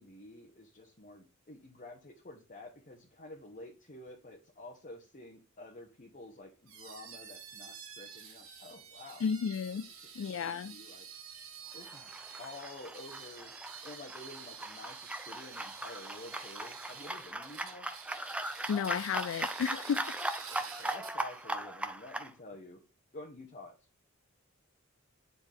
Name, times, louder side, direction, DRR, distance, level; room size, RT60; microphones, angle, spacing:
voice 1, 0.0-9.3 9.7-11.1 11.7-12.1 12.4-13.5 13.8-17.9 20.5-22.8 23.1-23.7, left 2 dB, 40° left, 1.1 m, -50 dB
sound 1, 6.7-21.5, right 6 dB, 80° right, 1.9 m, -49 dB
voice 2, 9.2-9.9 10.2-10.7 18.7-20.0, left 7 dB, 70° left, 0.3 m, -32 dB
sound 2, 11.8-22.3, right 1 dB, 5° right, 0.4 m, -39 dB
9.8 x 4.1 x 3.5 m
head